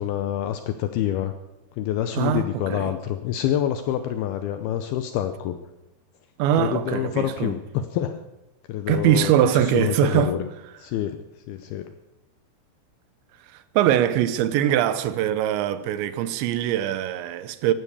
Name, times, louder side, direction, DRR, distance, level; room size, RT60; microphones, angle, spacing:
voice 1, 0.0-1.3 1.8-5.6 6.6-8.2 8.7-10.5 10.8-11.9, left 11 dB, 80° left, 2.3 m, -27 dB
voice 2, 2.2-2.9 6.4-7.5 8.9-10.3 13.7-17.7, right 11 dB, 80° right, 3.1 m, -22 dB
16.0 x 12.0 x 7.1 m
omnidirectional pair, 5.2 m